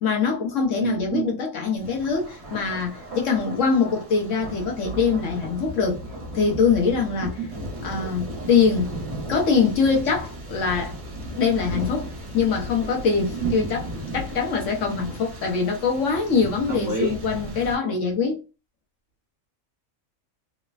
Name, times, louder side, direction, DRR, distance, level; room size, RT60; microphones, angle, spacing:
voice 1, 0.0-6.0 6.3-7.4 7.8-8.9 9.3-11.0 11.2-13.9 14.1-18.4, left 5 dB, 70° left, 1.1 m, -23 dB
voice 2, 0.8-1.4 7.5-7.7 13.4-13.7 16.7-17.2, right 5 dB, 35° right, 1.1 m, -28 dB
Thunder, 1.8-17.8, equal, 60° right, 1.0 m, -36 dB
3.1 x 2.1 x 2.3 m
omnidirectional pair, 1.4 m